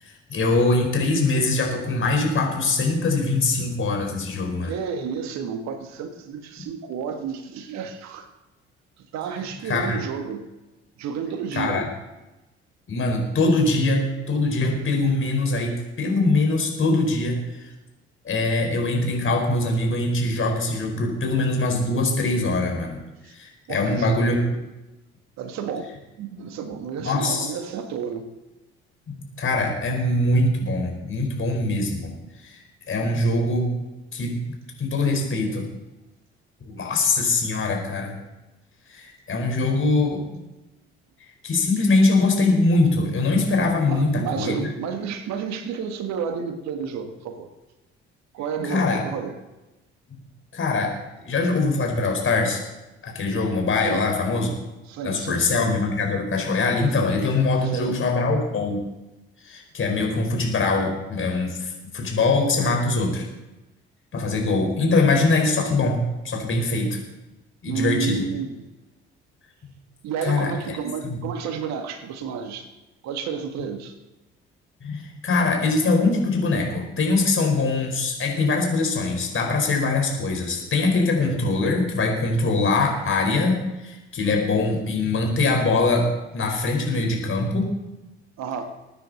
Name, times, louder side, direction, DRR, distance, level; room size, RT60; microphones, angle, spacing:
voice 1, 0.0-4.7 9.6-10.0 11.5-11.9 12.9-17.7 18.2-23.0 23.3-24.5 27.0-27.5 29.1-32.1 32.4-32.6 32.9-33.7 34.1-34.4 34.8-35.7 36.6-38.1 38.9-40.2 41.2-44.7 48.6-49.0 50.1-50.2 50.5-50.9 51.2-52.6 53.0-54.5 55.0-58.8 59.4-63.2 64.1-66.0 66.2-67.0 67.6-68.2 69.6-69.7 70.2-70.8 71.0-71.2 74.8-87.7, left 3 dB, 40° left, 1 dB, 4.9 m, -23 dB
voice 2, 4.6-8.3 9.1-10.5 11.0-11.9 23.2-23.3 23.7-24.3 25.4-28.3 43.8-47.5 48.3-49.4 53.8-54.1 54.9-55.6 57.6-58.0 67.6-68.6 70.0-72.7 73.0-73.9 88.4-88.6, right 6 dB, 60° right, 7 dB, 1.7 m, -31 dB
21.5 x 9.8 x 4.3 m, 1.0 s
figure-of-eight pair, 50°, 31 cm